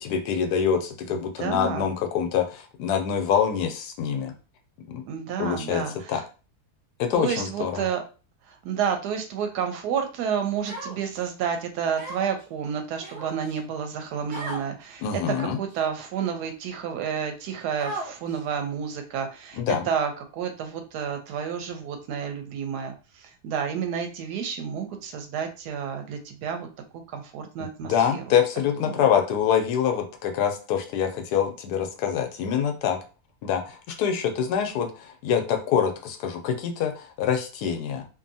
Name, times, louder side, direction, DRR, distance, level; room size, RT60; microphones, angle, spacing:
voice 1, 0.0-4.3 4.9-5.0 5.4-6.2 7.0-7.9 15.0-15.6 19.6-19.9 27.8-33.0 33.4-38.1, left 8 dB, 85° left, 5 dB, 1.1 m, -25 dB
voice 2, 1.1-1.9 5.1-6.2 7.1-8.0 8.5-26.7 27.1-28.2 28.8-29.0, right 7 dB, 90° right, 5 dB, 1.1 m, -30 dB
Human voice, 10.6-11.3 12.0-12.4 13.0-13.6 14.3-14.7 15.3-15.7 16.4-16.5 17.8-18.4, right 1 dB, 45° right, 1.1 m, -36 dB
2.7 x 2.5 x 2.6 m, 0.34 s
omnidirectional pair, 1.7 m